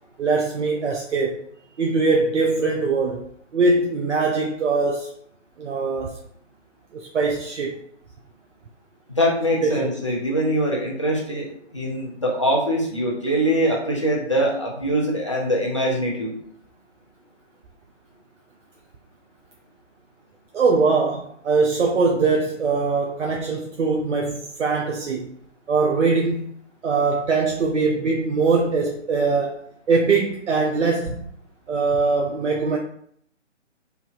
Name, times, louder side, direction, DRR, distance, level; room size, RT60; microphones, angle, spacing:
voice 1, 0.2-1.4 1.8-3.2 3.5-5.1 5.6-6.2 6.9-7.7 9.6-9.9 20.5-25.3 25.7-26.5 26.8-29.6 29.9-31.2 31.7-32.8, right 4 dB, 70° right, 0 dB, 0.5 m, -22 dB
voice 2, 9.1-16.3, equal, 25° left, -2 dB, 0.4 m, -23 dB
3.1 x 2.5 x 2.4 m, 0.64 s
figure-of-eight pair, 140°, 37 cm